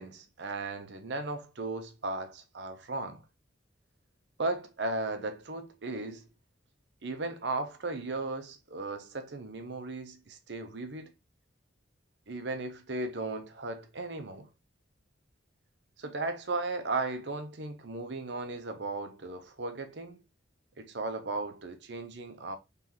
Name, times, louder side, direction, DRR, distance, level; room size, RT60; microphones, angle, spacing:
voice 1, 0.0-3.2 4.4-6.3 7.0-11.1 12.3-14.5 16.0-20.2 20.8-22.6, right 2 dB, 65° right, 0.8 m, -36 dB
3.9 x 3.4 x 3.0 m
head